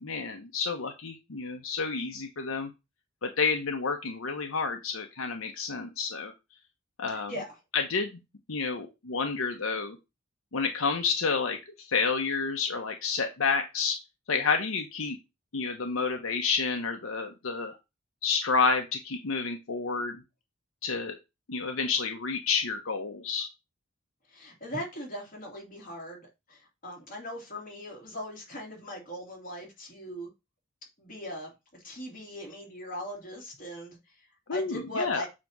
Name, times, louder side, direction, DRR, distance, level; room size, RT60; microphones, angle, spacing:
voice 1, 0.0-2.7 3.2-6.3 7.0-7.3 7.7-8.2 8.5-10.0 10.5-14.0 14.3-15.2 15.5-17.8 18.2-20.2 20.8-21.2 21.5-23.5 34.5-35.2, left 5 dB, 85° left, 5 dB, 0.9 m, -30 dB
voice 2, 7.1-7.5 24.3-30.3 31.0-34.0 34.5-35.3, left 1 dB, 45° left, -1 dB, 3.0 m, -39 dB
7.4 x 2.9 x 5.9 m, 0.24 s
head